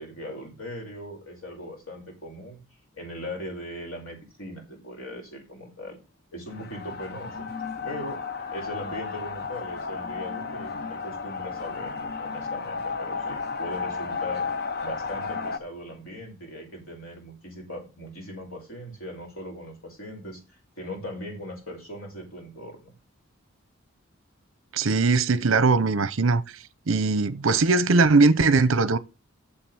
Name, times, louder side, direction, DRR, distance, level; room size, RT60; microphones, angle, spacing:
voice 1, 0.0-2.6 3.0-6.0 6.3-7.5 7.8-8.2 8.5-14.4 14.8-22.9, equal, 75° left, 5.4 m, -39 dB
sound 1, 6.5-15.6, left 5 dB, 45° left, 0.7 m, -33 dB
voice 2, 24.7-26.4 26.9-29.0, right 3 dB, 70° right, 0.7 m, -20 dB
7.7 x 7.2 x 6.2 m
head